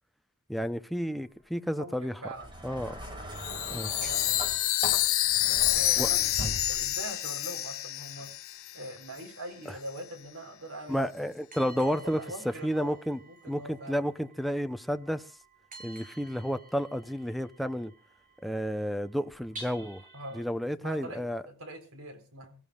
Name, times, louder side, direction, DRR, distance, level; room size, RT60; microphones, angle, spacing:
voice 1, 0.5-2.2 2.6-3.0 3.7-3.9 6.0-6.1 10.9-15.2 15.8-17.9 18.4-20.0 20.3-21.4, equal, ahead, 0.7 m, -31 dB
sound 1, 0.9-3.7 4.0-20.5, right 2 dB, 40° right, 8.0 m, -53 dB
voice 2, 1.7-2.5 3.7-4.5 5.5-6.3 6.7-8.3 8.7-11.1 11.6-13.0 13.2-14.0 20.1-20.5 20.8-22.6, right 1 dB, 80° right, 4.1 m, -43 dB
sound 2, 2.3-7.1 8.1-8.2, equal, 25° right, 5.3 m, -40 dB
Chime, 3.4-8.9, left 14 dB, 70° left, 0.9 m, -28 dB
25.5 x 15.0 x 2.4 m
head